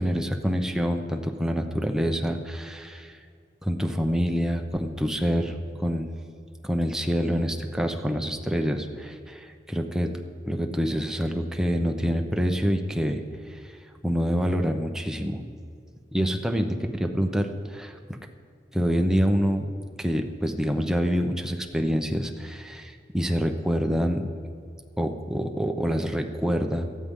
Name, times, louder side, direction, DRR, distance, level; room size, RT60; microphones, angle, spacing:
voice 1, 0.0-3.2 3.6-6.1 6.6-10.1 10.4-13.2 13.5-13.8 14.0-15.4 16.1-16.7 16.9-17.9 18.7-19.6 20.0-24.3 25.0-26.9, equal, 5° right, 3 dB, 0.8 m, -26 dB
18.0 x 14.0 x 3.7 m, 2.2 s
head